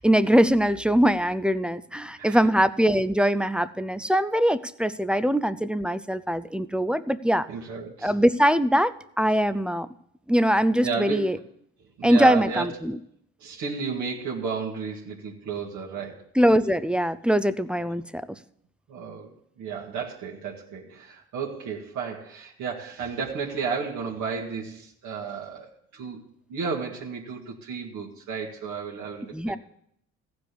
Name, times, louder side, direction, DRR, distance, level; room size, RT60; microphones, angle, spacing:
voice 1, 0.0-7.5 8.0-9.9 10.3-11.4 12.0-13.0 16.3-18.4 29.3-29.6, equal, 5° right, 14 dB, 0.5 m, -22 dB
voice 2, 7.5-8.1 10.8-11.4 12.0-12.7 13.4-16.2 18.9-26.2 26.5-29.6, right 5 dB, 65° right, -3 dB, 2.0 m, -33 dB
15.0 x 5.2 x 8.3 m, 0.73 s
supercardioid pair, 80°, 31 cm